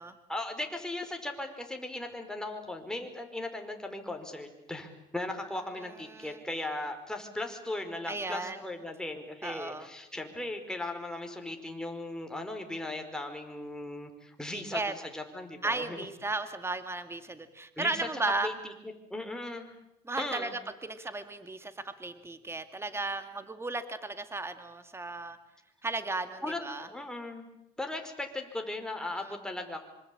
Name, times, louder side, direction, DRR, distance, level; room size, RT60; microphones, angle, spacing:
voice 1, 0.3-16.0 17.8-18.1 18.4-18.7 19.1-19.8 20.2-20.5 26.4-27.4 27.8-29.8, left 2 dB, 5° left, 4 dB, 5.2 m, -38 dB
voice 2, 6.1-6.4 8.1-8.6 9.4-9.9 14.5-14.9 15.6-18.5 20.1-25.4 25.8-26.9 29.2-29.3, right 2 dB, 15° right, 9 dB, 2.2 m, -35 dB
26.0 x 25.5 x 8.7 m, 0.83 s
cardioid pair, 110°, 17 cm